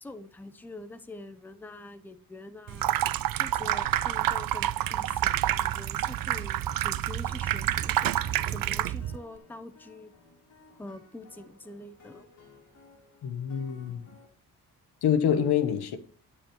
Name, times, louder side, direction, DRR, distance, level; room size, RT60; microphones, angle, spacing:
voice 1, 0.0-2.9 3.4-8.1 8.5-10.1 10.8-12.3, left 2 dB, 5° left, 0.6 m, -45 dB
Water tap faucet / Sink (filling or washing), 2.7-9.2, right 12 dB, 65° right, 0.5 m, -28 dB
sound 1, 8.2-14.3, left 3 dB, 55° left, 3.8 m, -56 dB
voice 2, 13.2-14.0 15.0-16.0, left 8 dB, 90° left, 1.2 m, -26 dB
9.7 x 9.7 x 3.1 m
wide cardioid pair, 170°, 37 cm